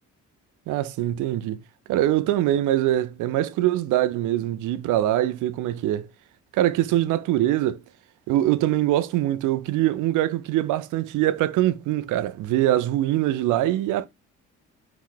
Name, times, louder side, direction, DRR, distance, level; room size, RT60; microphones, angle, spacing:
voice 1, 0.7-1.6 1.9-6.1 6.5-7.8 8.3-14.1, right 13 dB, 85° right, 0.6 m, -23 dB
4.8 x 2.7 x 3.8 m
cardioid pair, 90°, 30 cm